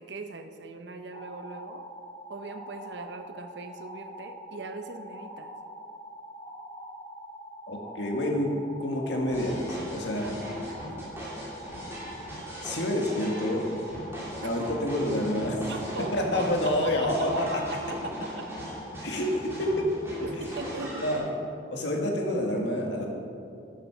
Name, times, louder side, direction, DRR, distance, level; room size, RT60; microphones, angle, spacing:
voice 1, 0.0-1.9 2.3-5.5 10.2-10.8 14.4-14.6 15.7-17.4 17.7-18.4 20.2-21.0, right 3 dB, 70° right, 7 dB, 0.8 m, -40 dB
sound 1, 1.1-19.8, equal, 35° left, 2.6 m, -44 dB
voice 2, 7.7-10.3 12.6-13.7 14.4-15.6 16.1-17.6 19.0-19.9 21.0-21.3 21.7-23.1, left 1 dB, 75° left, 1 dB, 1.9 m, -28 dB
sound 2, 9.3-21.2, equal, 15° right, 3.0 m, -39 dB
12.5 x 7.8 x 6.0 m, 2.6 s
head